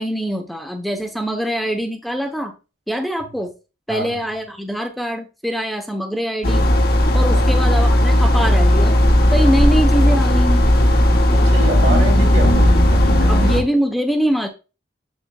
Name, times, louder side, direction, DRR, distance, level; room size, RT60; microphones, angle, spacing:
voice 1, 0.0-2.5 2.9-3.5 3.9-6.7 7.1-9.0 9.3-10.7 13.3-14.5, equal, ahead, 0.9 m, -23 dB
voice 2, 3.9-4.2 7.3-7.5 11.3-13.6, right 1 dB, 65° right, 2.5 m, -27 dB
sound 1, 6.4-13.6, left 1 dB, 50° left, 1.2 m, -14 dB
7.2 x 7.1 x 2.3 m
head